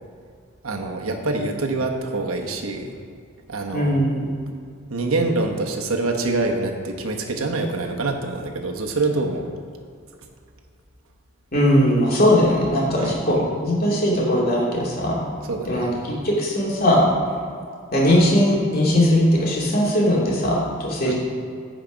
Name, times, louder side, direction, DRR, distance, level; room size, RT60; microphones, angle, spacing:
voice 1, 0.6-3.0 3.5-4.0 4.9-9.5 13.0-13.2 15.5-16.0 21.0-21.1, right 3 dB, 85° right, 2 dB, 1.1 m, -25 dB
voice 2, 3.7-4.3 11.5-15.2 15.6-17.1 17.9-21.1, equal, 45° left, -5 dB, 2.7 m, -19 dB
15.0 x 5.1 x 5.2 m, 2.3 s
head